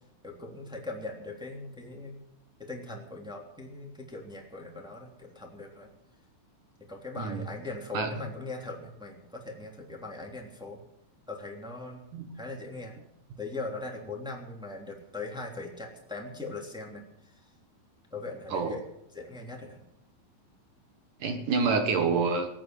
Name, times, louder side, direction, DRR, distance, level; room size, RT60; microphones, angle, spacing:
voice 1, 0.2-2.2 2.6-5.9 6.9-10.8 11.3-12.1 12.3-13.0 13.4-17.5 18.1-18.8 19.1-19.8, left 3 dB, ahead, -1 dB, 1.9 m, -40 dB
voice 2, 21.2-22.5, right 4 dB, 60° right, 6 dB, 2.3 m, -27 dB
19.5 x 9.4 x 7.6 m, 0.78 s
omnidirectional pair, 5.5 m